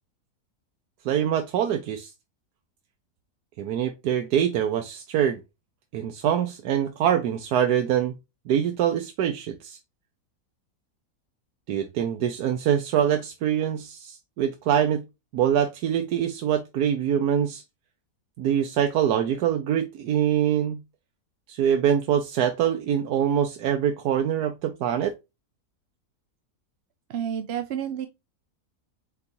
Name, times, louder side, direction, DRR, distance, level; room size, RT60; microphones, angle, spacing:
voice 1, 1.0-2.1 3.6-5.4 5.9-8.1 8.5-9.8 11.7-15.0 15.3-17.6 18.4-20.8 21.5-25.1, right 9 dB, 85° right, 1.2 m, -24 dB
voice 2, 27.1-28.1, right 9 dB, 65° right, 0.7 m, -30 dB
4.5 x 4.1 x 2.6 m
omnidirectional pair, 1.6 m